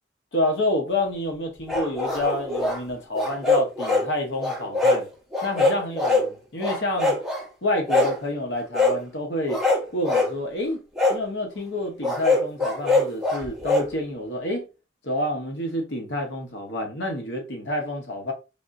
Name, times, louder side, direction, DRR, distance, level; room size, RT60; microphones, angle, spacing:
voice 1, 0.3-5.1 5.4-7.2 7.6-9.6 9.9-10.8 11.1-14.7 15.0-18.3, left 1 dB, 80° left, 0.9 m, -28 dB
sound 1, 1.7-2.8 3.1-4.1 4.4-5.0 5.3-6.3 6.6-7.4 7.9-8.2 8.7-9.0 9.5-10.3 11.0-11.2 12.0-13.9, left 2 dB, ahead, 1.0 m, -22 dB
3.3 x 2.5 x 2.5 m
head